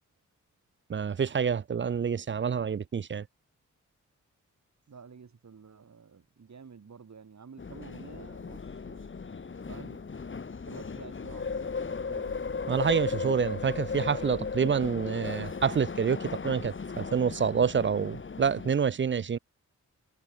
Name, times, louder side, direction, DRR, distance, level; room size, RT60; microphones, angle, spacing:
voice 1, 0.9-3.2 12.7-19.4, right 7 dB, 35° right, 0.5 m, -27 dB
voice 2, 4.9-9.1 9.7-10.0 10.7-12.4, right 6 dB, 60° right, 4.3 m, -50 dB
sound 1, 7.6-18.7, left 5 dB, 40° left, 1.4 m, -36 dB
cardioid pair, 55°, 32 cm